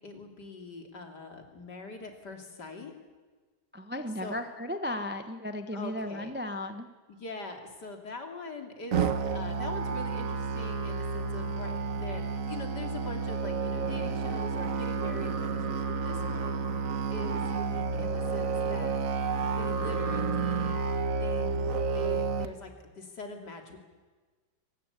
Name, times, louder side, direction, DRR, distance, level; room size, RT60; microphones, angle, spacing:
voice 1, 0.0-2.9 4.2-4.4 5.7-6.3 7.1-16.8 17.1-19.0 19.6-20.8 21.2-23.8, left 3 dB, 60° left, 4 dB, 3.4 m, -43 dB
voice 2, 3.7-6.9, left 1 dB, 10° right, 7 dB, 0.7 m, -35 dB
Musical instrument, 8.9-22.4, right 4 dB, 50° right, 1.4 m, -30 dB
23.5 x 19.0 x 8.3 m, 1.3 s
omnidirectional pair, 2.1 m